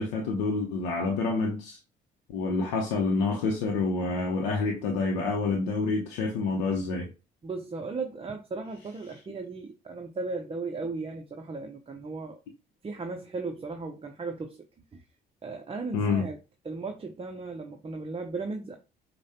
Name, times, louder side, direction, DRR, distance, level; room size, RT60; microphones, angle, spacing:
voice 1, 0.0-1.8 2.3-7.1 15.9-16.2, left 3 dB, 90° left, 0.6 m, -28 dB
voice 2, 7.4-12.4 12.8-14.6 14.9-15.0 15.4-16.4 16.6-18.8, right 3 dB, 25° right, 0.6 m, -36 dB
4.7 x 2.2 x 2.8 m
supercardioid pair, 55°, 21 cm